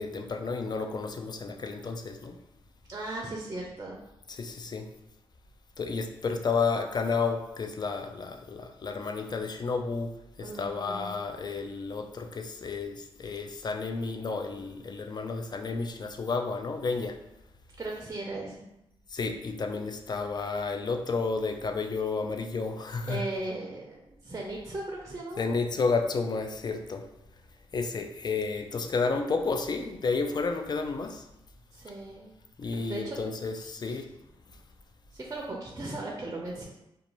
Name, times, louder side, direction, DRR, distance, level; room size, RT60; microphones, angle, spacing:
voice 1, 0.0-2.4 4.4-4.9 5.8-10.1 10.4-17.2 19.1-23.2 25.4-27.0 27.7-31.2 32.6-34.1, left 4 dB, 40° left, 4 dB, 0.4 m, -31 dB
voice 2, 2.9-4.0 10.4-11.2 17.8-18.6 23.0-25.4 31.7-32.3 32.7-33.2 33.6-34.0 35.1-36.6, right 2 dB, 30° right, -1 dB, 0.5 m, -37 dB
2.5 x 2.2 x 3.0 m, 0.89 s
cardioid pair, 55°, 11 cm